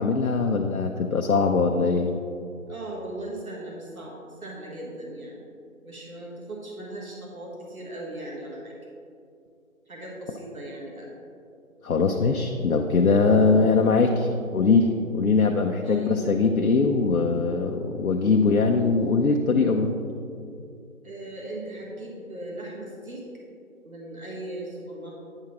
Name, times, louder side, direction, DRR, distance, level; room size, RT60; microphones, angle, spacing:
voice 1, 0.0-2.1 11.8-19.9, left 4 dB, 80° left, 3 dB, 0.6 m, -21 dB
voice 2, 2.7-5.4 5.8-8.8 9.9-11.1 15.8-16.1 21.0-23.2 23.8-25.1, right 1 dB, 80° right, -3 dB, 1.5 m, -38 dB
8.7 x 5.6 x 3.0 m, 2.5 s
figure-of-eight pair, 155°, 42 cm